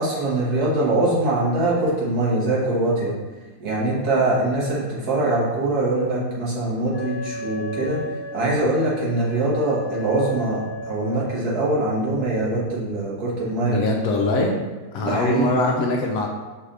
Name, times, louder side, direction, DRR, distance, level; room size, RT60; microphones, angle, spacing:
voice 1, 0.0-3.2 3.6-8.0 8.3-10.6 10.9-13.8 14.3-14.5 15.0-15.5, right 2 dB, 70° right, -6 dB, 1.8 m, -23 dB
Wind instrument woodwind instrument, 6.9-11.4, equal, 10° right, 0.7 m, -34 dB
voice 2, 13.7-14.5 14.9-16.3, left 2 dB, 70° left, 0 dB, 0.9 m, -22 dB
5.6 x 3.3 x 2.6 m, 1.3 s
omnidirectional pair, 1.7 m